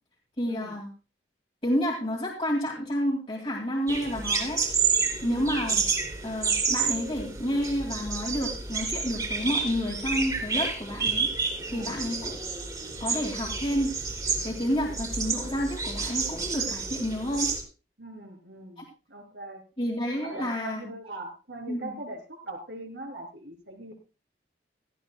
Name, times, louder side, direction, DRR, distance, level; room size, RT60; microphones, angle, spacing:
voice 1, 0.4-0.9 1.6-4.6 5.2-5.8 6.2-11.3 11.7-12.4 13.0-13.9 14.4-17.5 18.8-18.9 19.8-20.9 21.7-21.9, equal, 30° left, -4 dB, 2.3 m, -30 dB
sound 1, 3.9-17.6, right 5 dB, 20° right, 2.8 m, -30 dB
voice 2, 5.2-5.6 11.6-12.0 18.0-19.6 20.1-23.9, right 2 dB, 70° right, 3 dB, 3.4 m, -41 dB
17.0 x 13.5 x 2.3 m, 0.31 s
head